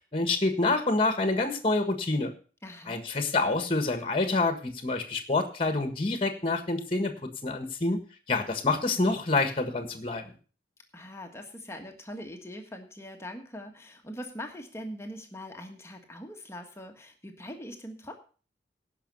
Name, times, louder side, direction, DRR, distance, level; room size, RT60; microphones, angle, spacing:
voice 1, 0.1-2.3 2.9-7.2 7.4-8.0 8.3-10.2, left 3 dB, 30° left, 7 dB, 1.6 m, -27 dB
voice 2, 2.6-3.0 10.9-18.1, equal, 15° left, 4 dB, 1.6 m, -42 dB
17.0 x 5.9 x 5.5 m, 0.38 s
head